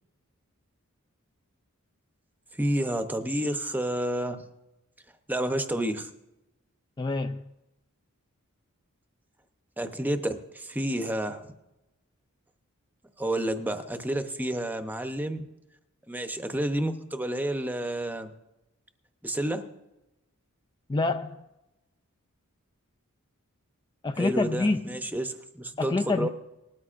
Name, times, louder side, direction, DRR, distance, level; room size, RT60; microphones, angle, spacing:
voice 1, 2.6-4.4 5.3-6.1 9.8-11.5 13.2-15.4 16.1-18.3 19.2-19.6 24.1-26.3, right 1 dB, 10° right, 0.8 m, -30 dB
voice 2, 7.0-7.4 20.9-21.4 24.0-24.8 25.8-26.3, left 3 dB, 20° left, 0.3 m, -26 dB
19.5 x 13.0 x 2.5 m
head